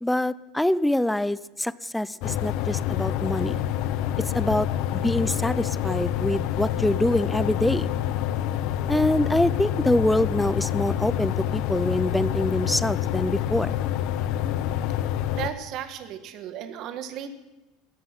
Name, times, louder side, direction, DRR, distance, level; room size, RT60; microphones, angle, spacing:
voice 1, 0.0-3.6 4.3-4.7 4.9-7.9 8.9-13.7, left 1 dB, 5° left, 19 dB, 0.5 m, -25 dB
sound 1, 2.2-15.5, left 11 dB, 60° left, 1.0 m, -27 dB
voice 2, 15.3-17.3, right 10 dB, 50° right, 9 dB, 1.6 m, -35 dB
16.5 x 14.0 x 6.0 m, 1.0 s
supercardioid pair, 130°, 0 cm